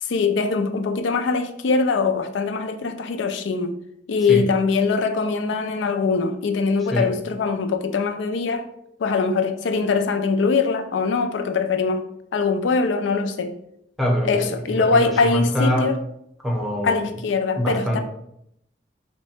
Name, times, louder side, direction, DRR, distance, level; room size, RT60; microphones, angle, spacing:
voice 1, 0.0-3.8 4.1-8.7 9.0-12.0 12.3-13.6 14.2-16.0 16.8-18.0, left 4 dB, 85° left, 0.4 m, -22 dB
voice 2, 6.9-7.2 14.0-16.0 16.4-17.2 17.5-18.0, equal, ahead, 0.6 m, -24 dB
3.6 x 2.1 x 4.2 m
head